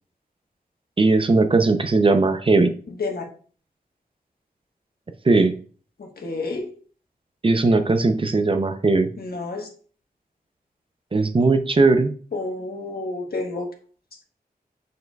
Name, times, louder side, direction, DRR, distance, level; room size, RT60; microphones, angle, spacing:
voice 1, 1.0-2.7 5.3-5.5 7.4-9.1 11.1-12.1, right 3 dB, 35° right, 8 dB, 0.5 m, -18 dB
voice 2, 6.0-6.7 9.2-9.7 12.3-13.7, left 3 dB, 75° left, 2 dB, 1.2 m, -29 dB
6.7 x 6.5 x 2.3 m, 0.42 s
wide cardioid pair, 105°, 16 cm